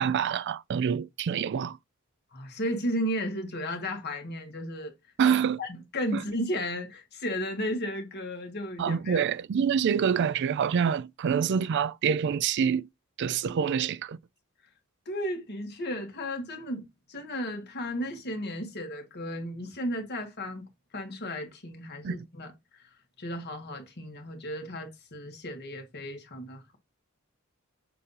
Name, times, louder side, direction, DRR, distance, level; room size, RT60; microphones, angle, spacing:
voice 1, 0.0-1.8 5.2-5.6 6.1-6.2 8.8-12.9 13.2-14.2 22.0-22.2, right 7 dB, 60° right, 0.3 m, -26 dB
voice 2, 2.3-4.9 5.6-9.3 15.0-20.6 20.9-22.9 23.2-26.8, equal, 50° left, 1.6 m, -34 dB
6.6 x 2.7 x 5.5 m
head